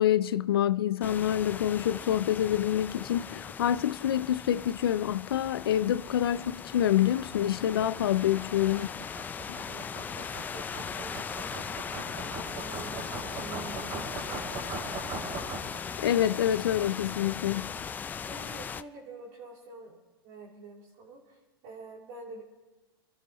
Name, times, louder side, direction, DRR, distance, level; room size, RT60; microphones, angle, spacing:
voice 1, 0.0-8.9 9.5-9.6 16.0-17.7, left 11 dB, 75° left, 0.5 m, -27 dB
sound 1, 1.0-18.8, left 6 dB, 15° left, 0.4 m, -39 dB
sound 2, 6.0-16.0, right 3 dB, 30° right, 2.8 m, -41 dB
voice 2, 9.7-11.5 11.9-14.4 18.2-22.4, right 3 dB, 50° right, 3.2 m, -47 dB
28.0 x 12.0 x 3.1 m
hypercardioid pair, 125°, 13 cm